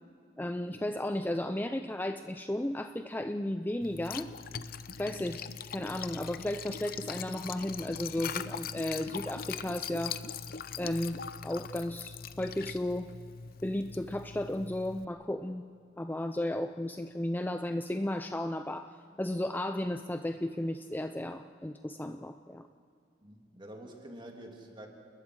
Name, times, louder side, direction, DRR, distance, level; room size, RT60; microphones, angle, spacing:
voice 1, 0.4-4.3 5.0-5.5 5.7-10.2 10.8-13.1 13.6-15.6 16.0-18.9 19.2-22.7, left 1 dB, 10° left, 7 dB, 0.5 m, -34 dB
Liquid, 3.8-15.0, left 7 dB, 55° left, 0.7 m, -41 dB
voice 2, 23.2-24.9, right 1 dB, 25° right, 1 dB, 2.9 m, -47 dB
29.5 x 21.0 x 4.8 m, 2.5 s
head